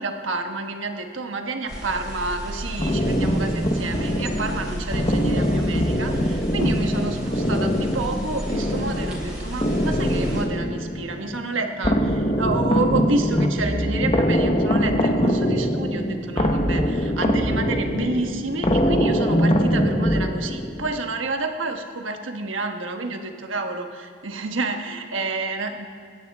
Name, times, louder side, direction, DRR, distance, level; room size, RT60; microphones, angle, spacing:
voice 1, 0.0-25.9, right 3 dB, 85° right, 4 dB, 1.3 m, -29 dB
sound 1, 1.7-10.4, equal, 5° right, 3.8 m, -33 dB
sound 2, 2.8-20.9, equal, 30° left, 1.0 m, -23 dB
27.0 x 10.5 x 3.6 m, 2.1 s
head